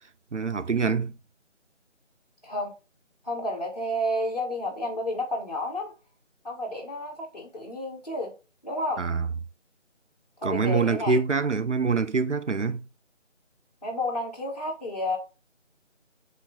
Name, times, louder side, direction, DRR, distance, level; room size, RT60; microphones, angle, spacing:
voice 1, 0.3-1.1 9.0-9.3 10.4-12.8, right 4 dB, 70° right, 0.7 m, -25 dB
voice 2, 3.2-5.9 6.4-8.3 8.6-9.0 10.4-11.2 13.8-15.2, left 1 dB, 30° left, 1.7 m, -31 dB
7.4 x 3.3 x 4.2 m
figure-of-eight pair, 165°, 37 cm